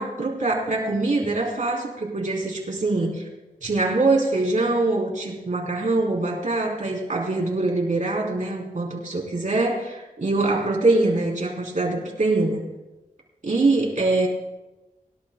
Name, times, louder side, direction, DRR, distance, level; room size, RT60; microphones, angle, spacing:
voice 1, 0.0-3.3 3.6-12.6 13.4-14.3, right 2 dB, 60° right, -1 dB, 3.5 m, -23 dB
24.0 x 11.5 x 2.2 m, 1.1 s
wide cardioid pair, 65°, 15 cm